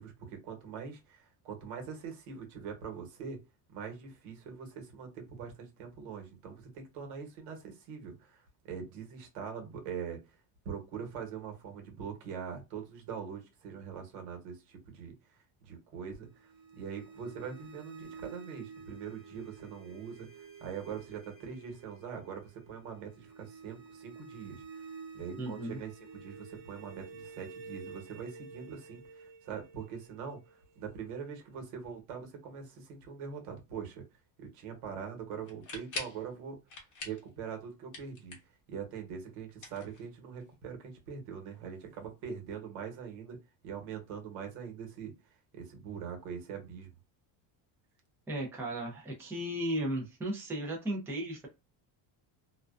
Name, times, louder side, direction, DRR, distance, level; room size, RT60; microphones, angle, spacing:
voice 1, 0.0-3.4 3.7-10.4 10.6-15.1 15.6-24.9 25.1-34.0 34.4-36.6 37.0-38.3 38.7-43.4 43.6-45.1 45.5-46.9, right 7 dB, 90° right, 1.1 m, -43 dB
sound 1, 16.2-31.2, right 5 dB, 65° right, 1.0 m, -50 dB
voice 2, 25.4-25.8 48.3-51.5, right 1 dB, 5° right, 0.4 m, -35 dB
sound 2, 35.5-36.2 36.7-37.3 37.6-38.6 39.5-40.4, left 3 dB, 40° left, 0.9 m, -43 dB
2.4 x 2.2 x 2.3 m
cardioid pair, 165°, 50 cm